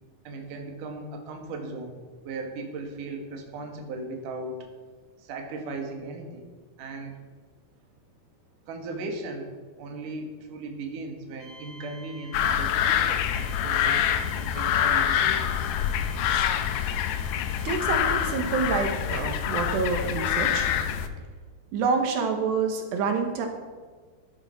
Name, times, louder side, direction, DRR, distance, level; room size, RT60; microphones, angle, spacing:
voice 1, 0.2-4.7 5.2-6.5 6.8-7.1 8.7-9.5 9.8-15.7, right 2 dB, 55° right, 3 dB, 3.3 m, -37 dB
sound 1, 11.4-19.1, right 2 dB, 15° left, 4.9 m, -49 dB
sound 2, 12.3-21.1, left 9 dB, 85° left, 3.1 m, -26 dB
voice 2, 17.7-20.7 21.7-23.5, right 5 dB, 80° right, 5 dB, 3.4 m, -27 dB
13.5 x 11.5 x 5.9 m, 1.5 s
omnidirectional pair, 4.8 m